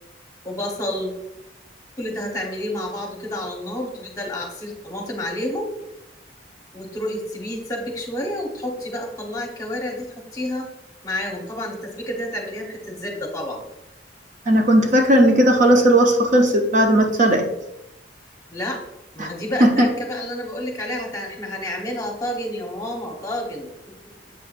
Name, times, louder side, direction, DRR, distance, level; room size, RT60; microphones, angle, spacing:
voice 1, 0.4-1.2 2.0-5.7 6.7-10.7 11.0-13.6 18.5-18.8 19.1-23.7, left 1 dB, 20° left, 1 dB, 1.1 m, -29 dB
voice 2, 14.5-17.4 19.2-19.3 19.6-19.9, right 1 dB, 45° right, 3 dB, 0.6 m, -16 dB
7.6 x 5.8 x 2.5 m, 0.88 s
head